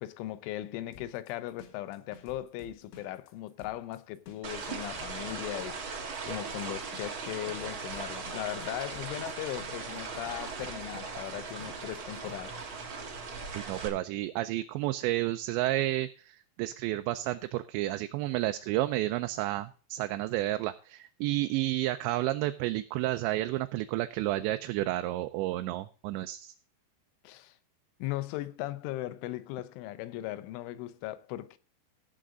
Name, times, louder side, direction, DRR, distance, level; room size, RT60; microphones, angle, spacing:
voice 1, 0.0-5.8 6.3-12.6 27.2-27.6 28.0-31.6, left 15 dB, 85° left, 3.2 m, -38 dB
sound 1, 0.9-12.6, left 6 dB, 70° left, 3.8 m, -53 dB
sound 2, 4.4-13.9, right 4 dB, 55° right, 1.4 m, -39 dB
voice 2, 13.5-26.5, right 16 dB, 80° right, 2.7 m, -31 dB
17.0 x 6.3 x 3.7 m
omnidirectional pair, 5.4 m